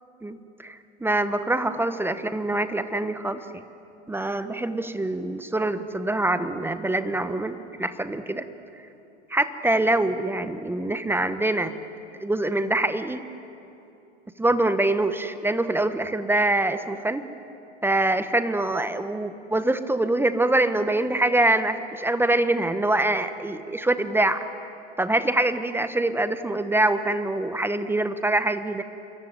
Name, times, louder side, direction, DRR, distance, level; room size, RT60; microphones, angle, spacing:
voice 1, 0.2-3.4 4.1-8.5 9.3-11.7 12.2-13.2 14.4-17.2 17.8-24.4 25.0-28.8, right 2 dB, 5° right, 11 dB, 1.1 m, -24 dB
27.0 x 21.5 x 9.5 m, 2.8 s
hypercardioid pair, 95°, 35 cm